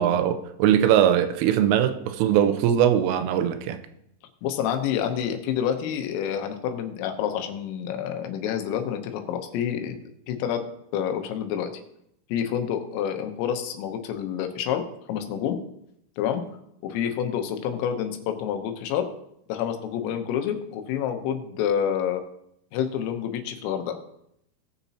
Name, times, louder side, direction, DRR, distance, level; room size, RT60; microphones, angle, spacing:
voice 1, 0.0-3.8, right 10 dB, 85° right, 3.2 m, -21 dB
voice 2, 4.4-10.0 10.3-10.6 10.9-11.7 12.3-14.8 15.1-15.6 16.2-16.4 16.8-19.1 19.5-22.2 22.7-24.0, left 9 dB, 85° left, 3.6 m, -28 dB
19.0 x 7.0 x 2.8 m
omnidirectional pair, 5.8 m